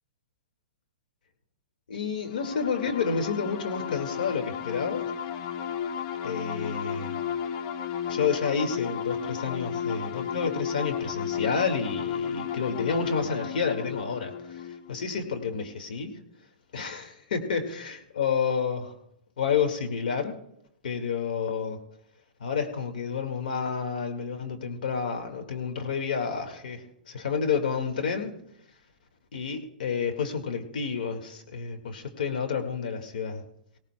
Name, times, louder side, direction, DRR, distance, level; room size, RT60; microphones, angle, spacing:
voice 1, 1.9-5.1 6.2-7.2 8.1-16.1 16.7-18.9 19.4-20.4 20.8-21.8 22.4-28.3 29.3-33.4, left 6 dB, 70° left, 5 dB, 1.8 m, -30 dB
sound 1, 2.3-15.8, left 8 dB, 45° left, 0.7 m, -33 dB
18.5 x 17.5 x 2.2 m, 0.76 s
hypercardioid pair, 120°, 5 cm